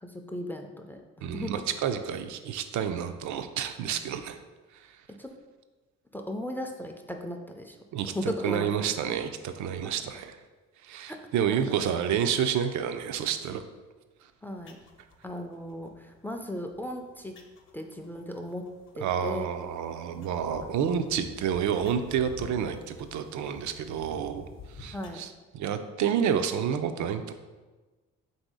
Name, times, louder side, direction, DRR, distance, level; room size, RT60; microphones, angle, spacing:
voice 1, 0.0-1.0 1.3-1.5 5.2-5.3 6.1-7.8 8.1-8.9 11.1-11.2 11.5-11.6 14.4-14.8 15.2-17.4 17.7-19.5 20.6-20.8 24.9-25.2, left 1 dB, 5° left, 4 dB, 0.3 m, -36 dB
voice 2, 1.2-4.4 7.9-10.4 10.8-13.6 19.0-27.3, right 8 dB, 75° right, 9 dB, 0.5 m, -29 dB
sound 1, 14.6-25.1, left 3 dB, 40° left, 0.6 m, -50 dB
3.6 x 2.7 x 4.7 m, 1.2 s
cardioid pair, 90°, 30 cm